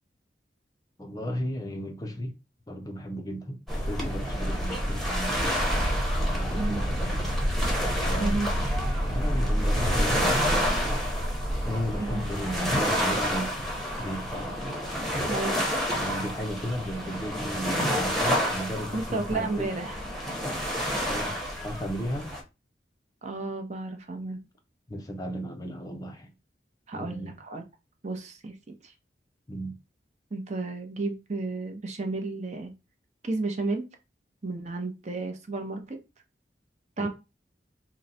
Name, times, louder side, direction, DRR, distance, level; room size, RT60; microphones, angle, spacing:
voice 1, 1.0-2.4 2.7-7.3 7.8-8.8 9.1-11.1 11.6-14.6 15.9-19.8 21.0-22.3 24.9-26.3 26.9-27.3 29.5-29.8 37.0-37.1, equal, 20° left, 0.5 m, -35 dB
sound 1, 3.7-22.4, equal, ahead, 0.9 m, -28 dB
voice 2, 8.2-8.5 12.0-12.2 15.3-15.7 18.9-20.0 23.2-24.4 26.9-27.6 28.0-28.9 30.3-32.7 33.2-33.9 34.4-36.0 37.0-37.1, right 3 dB, 40° right, 0.7 m, -32 dB
3.8 x 2.1 x 4.1 m
head